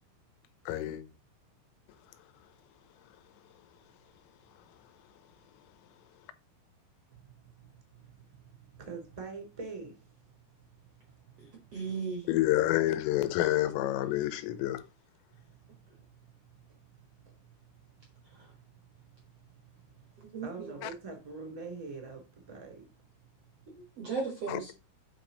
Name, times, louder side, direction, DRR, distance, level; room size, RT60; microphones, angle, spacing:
voice 1, 0.7-1.0 12.3-14.9 20.8-20.9 24.5-24.7, left 14 dB, 85° left, 3.5 m, -28 dB
voice 2, 7.1-10.2 10.6-11.7 15.3-22.9, right 4 dB, 15° right, 1.5 m, -47 dB
voice 3, 11.4-12.3 18.2-18.5 20.2-20.7 23.7-24.7, right 5 dB, 80° right, 1.3 m, -37 dB
8.9 x 5.3 x 3.9 m
omnidirectional pair, 5.8 m